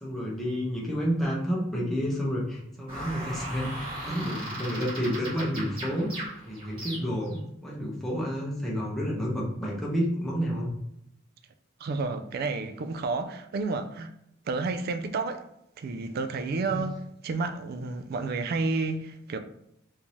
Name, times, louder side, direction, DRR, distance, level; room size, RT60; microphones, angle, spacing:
voice 1, 0.0-10.7 16.6-16.8, equal, ahead, 0.9 m, -30 dB
sound 1, 2.9-7.4, right 1 dB, 30° right, 1.5 m, -37 dB
voice 2, 11.8-14.1 14.5-15.4 15.8-19.4, right 3 dB, 50° right, 0.3 m, -31 dB
3.5 x 2.7 x 3.0 m
head